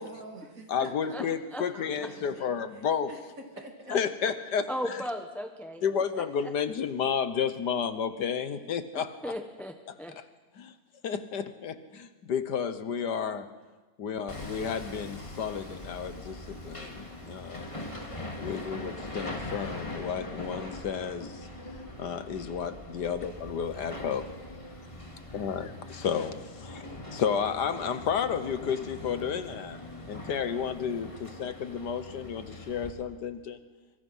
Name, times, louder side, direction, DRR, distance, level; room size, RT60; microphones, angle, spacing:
voice 1, 0.0-1.3 1.7-3.2 3.6-3.9, right 2 dB, 45° right, 3 dB, 3.0 m, -48 dB
voice 2, 0.7-3.1 3.9-5.0 5.8-9.3 10.6-10.7 11.0-13.5 14.0-17.8 18.4-21.4 22.0-24.3 25.3-29.8 30.1-33.6, left 7 dB, 70° left, 11 dB, 1.7 m, -32 dB
voice 3, 4.7-5.8 6.2-6.3 8.9-10.2, equal, ahead, 6 dB, 0.8 m, -36 dB
Hammer, 14.3-32.9, left 1 dB, 15° left, 2.3 m, -42 dB
25.0 x 24.0 x 5.6 m, 1.3 s
omnidirectional pair, 1.9 m